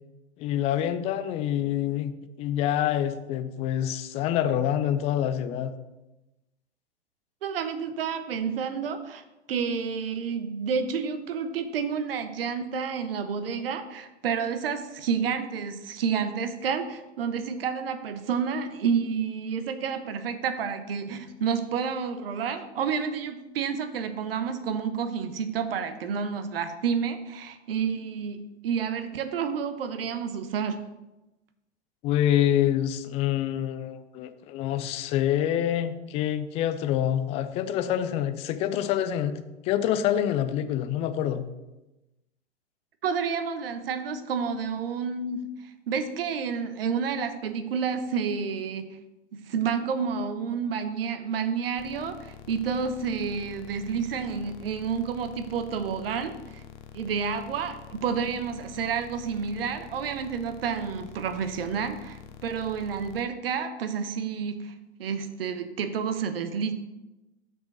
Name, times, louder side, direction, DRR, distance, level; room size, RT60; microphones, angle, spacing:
voice 1, 0.4-2.1 2.4-5.7 32.0-41.5, left 11 dB, 20° left, 10 dB, 0.4 m, -26 dB
voice 2, 7.4-9.2 9.5-28.4 28.6-30.8 43.0-45.5 45.9-48.9 49.3-56.6 56.9-64.7 65.0-66.7, right 6 dB, 55° right, 9 dB, 1.0 m, -30 dB
sound 1, 51.8-63.2, left 8 dB, 40° left, 0.8 m, -47 dB
6.1 x 5.2 x 6.4 m, 0.99 s
figure-of-eight pair, 100°, 34 cm